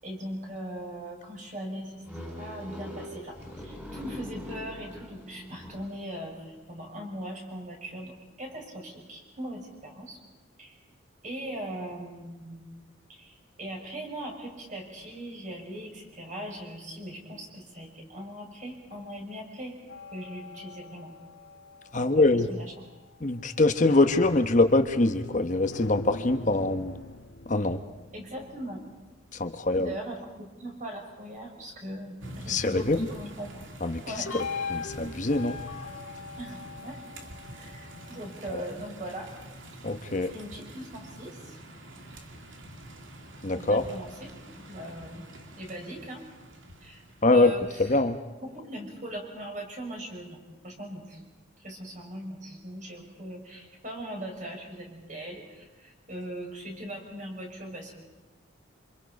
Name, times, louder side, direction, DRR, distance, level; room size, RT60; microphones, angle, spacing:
voice 1, 0.0-10.2 10.6-10.8 11.2-12.7 13.1-19.8 20.1-21.1 21.9-22.7 28.1-28.8 29.7-33.6 34.0-34.3 36.4-37.0 37.5-39.3 40.3-41.6 43.5-44.3 44.7-45.2 45.5-46.2 46.8-47.0 47.3-48.0 48.4-51.2 51.6-57.9, right 1 dB, 40° right, 1 dB, 6.1 m, -40 dB
sound 1, 2.0-6.1, equal, 10° right, 4.6 m, -42 dB
sound 2, 19.9-22.5 23.6-30.4 34.3-38.5, left 4 dB, 90° left, 2.1 m, -42 dB
voice 2, 21.9-22.5 23.2-26.9 27.5-27.8 29.4-29.9 32.5-33.1 33.8-34.0 34.3-34.4 34.7-35.6 39.8-40.3 43.4-43.8 47.2-47.5 47.9-48.2, left 2 dB, 40° left, 7 dB, 1.0 m, -23 dB
sound 3, 32.2-47.8, right 1 dB, 80° right, 2.7 m, -46 dB
27.5 x 26.5 x 5.3 m, 1.2 s
head